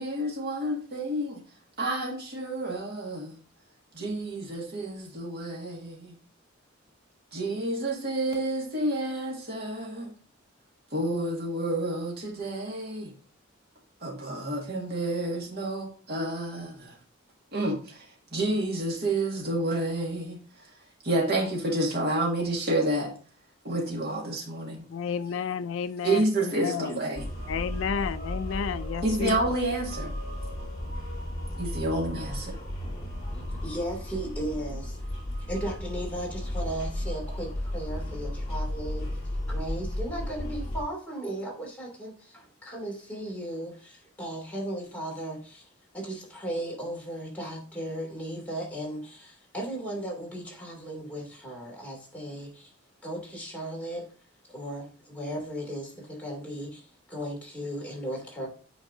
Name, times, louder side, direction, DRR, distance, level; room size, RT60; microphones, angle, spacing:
voice 1, 0.0-1.4 1.8-3.4 3.9-6.2 7.3-10.1 10.9-13.1 14.0-16.9 17.5-18.1 18.3-20.4 21.0-23.1 23.6-24.8 26.0-27.3 29.0-30.1 31.5-32.6, right 1 dB, 50° right, 1.9 m, -29 dB
voice 2, 24.9-27.0 27.5-29.4, left 7 dB, 65° left, 0.3 m, -31 dB
sound 1, 27.2-40.8, left 1 dB, 35° left, 2.0 m, -34 dB
voice 3, 33.3-35.0 35.5-39.1 39.5-45.7 45.9-52.7 53.0-54.0 54.5-56.8 57.1-58.5, right 1 dB, 5° left, 2.6 m, -36 dB
9.0 x 4.6 x 2.7 m
head